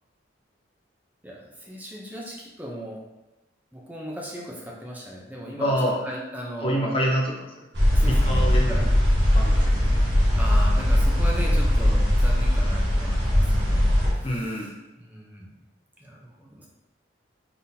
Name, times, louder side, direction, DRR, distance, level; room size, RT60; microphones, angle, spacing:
voice 1, 1.2-3.0 3.7-6.9 7.9-8.9 10.4-13.9 14.1-14.6 15.0-15.5 16.0-16.7, equal, 10° right, -2 dB, 0.6 m, -37 dB
voice 2, 5.6-6.0 6.6-7.3 8.0-8.7 9.3-10.0 14.2-14.7, equal, 30° left, -2 dB, 0.7 m, -26 dB
sound 1, 7.7-14.1, equal, 65° right, 1.2 m, -20 dB
4.0 x 3.6 x 2.7 m, 0.98 s
head